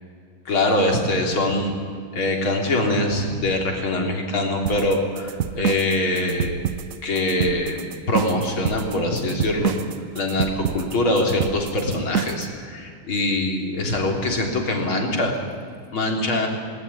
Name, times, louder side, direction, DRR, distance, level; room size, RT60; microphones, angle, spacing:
voice 1, 0.5-1.7 2.1-6.5 7.0-7.8 8.1-9.8 10.2-15.3 15.9-16.5, left 1 dB, 70° left, 1 dB, 4.4 m, -23 dB
sound 1, 4.7-12.5, right 8 dB, 80° right, 0.7 m, -28 dB
20.0 x 19.5 x 10.0 m, 2.2 s
omnidirectional pair, 2.4 m